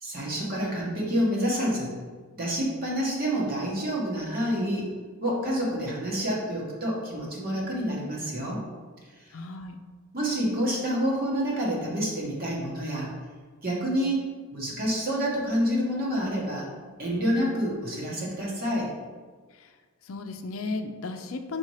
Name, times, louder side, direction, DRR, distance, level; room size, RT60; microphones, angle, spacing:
voice 1, 0.0-2.0 2.3-4.9 5.2-8.6 10.1-13.1 13.6-14.2 14.5-16.7 17.0-18.9, equal, 40° right, -4 dB, 1.5 m, -28 dB
voice 2, 9.3-9.8 19.5-19.7 20.0-21.6, left 3 dB, 60° left, 6 dB, 0.5 m, -35 dB
4.9 x 4.3 x 4.8 m, 1.5 s
head